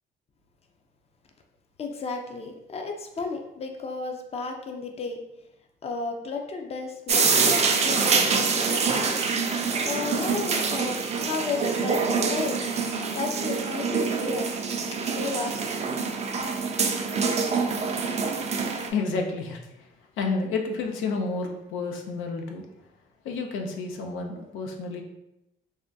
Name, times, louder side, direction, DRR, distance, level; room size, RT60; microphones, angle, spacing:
voice 1, 1.8-5.2 5.8-9.1 9.8-12.0 12.3-12.6 13.1-15.9, left 4 dB, 30° left, 3 dB, 0.4 m, -33 dB
sound 1, 7.1-18.9, right 5 dB, 35° right, 0.4 m, -25 dB
voice 2, 18.9-19.9 20.2-22.7 23.2-25.0, left 4 dB, 90° left, 3 dB, 0.5 m, -30 dB
3.4 x 2.1 x 2.6 m, 0.87 s
cardioid pair, 90°, 20 cm